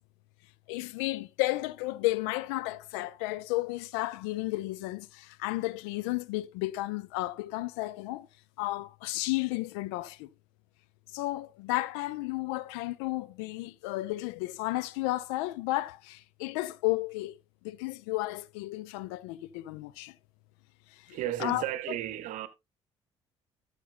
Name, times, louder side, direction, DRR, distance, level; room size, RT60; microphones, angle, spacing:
voice 1, 0.7-8.3 8.6-10.3 11.1-17.4 17.6-20.1 20.9-21.6, left 18 dB, 70° left, 0.4 m, -33 dB
voice 2, 21.1-22.5, right 13 dB, 60° right, 0.8 m, -34 dB
13.0 x 6.6 x 2.5 m
figure-of-eight pair, 50°, 15 cm